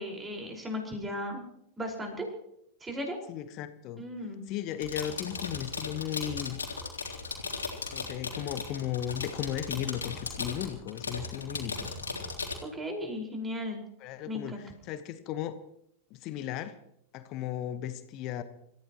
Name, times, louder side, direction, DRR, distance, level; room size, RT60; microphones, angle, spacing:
voice 1, 0.0-1.4 1.8-2.3 2.8-3.2 4.0-4.4 12.7-13.8 14.3-14.6, left 1 dB, 15° right, 1 dB, 5.3 m, -36 dB
voice 2, 3.3-4.0 4.5-6.6 7.9-11.9 14.0-14.5 14.8-15.6 16.1-16.8 17.1-18.4, left 11 dB, 40° left, 11 dB, 1.3 m, -35 dB
sound 1, 4.7-12.5, left 4 dB, 75° left, 3.5 m, -37 dB
27.5 x 15.0 x 3.1 m, 0.74 s
figure-of-eight pair, 90°, 0 cm